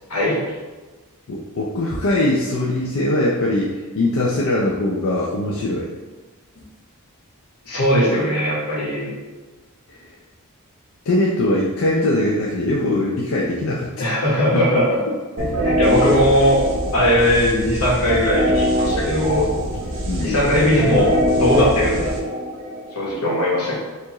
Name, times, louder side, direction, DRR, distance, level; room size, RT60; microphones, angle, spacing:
voice 1, 1.3-5.9 9.9-10.2 11.1-13.9 14.5-14.6 15.1-15.2 20.1-20.4, left 1 dB, 65° left, -4 dB, 0.5 m, -21 dB
voice 2, 7.6-9.1 14.0-14.8 15.4-16.6 16.9-19.5 20.2-22.1 22.9-23.7, left 1 dB, 85° left, -6 dB, 1.3 m, -19 dB
sound 1, 15.4-23.0, equal, 60° right, 0.7 m, -23 dB
4.5 x 2.5 x 3.0 m, 1.3 s
head